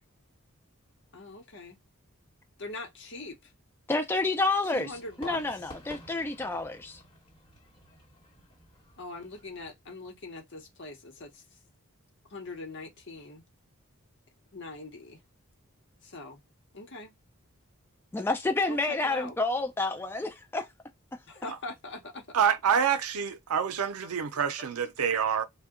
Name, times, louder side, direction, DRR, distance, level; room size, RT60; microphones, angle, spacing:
voice 1, 1.1-1.8 2.6-3.5 4.6-5.4 9.0-11.4 12.3-13.4 14.5-15.2 16.0-16.4 16.7-17.1 18.7-19.4 21.3-22.2, left 2 dB, 55° left, 0.9 m, -42 dB
voice 2, 3.9-4.9 5.2-7.0 18.1-20.7, left 3 dB, 10° left, 0.3 m, -29 dB
Fireworks, 4.7-9.7, left 1 dB, 25° left, 1.9 m, -52 dB
voice 3, 22.3-25.4, right 7 dB, 85° right, 0.5 m, -27 dB
2.7 x 2.2 x 3.6 m
head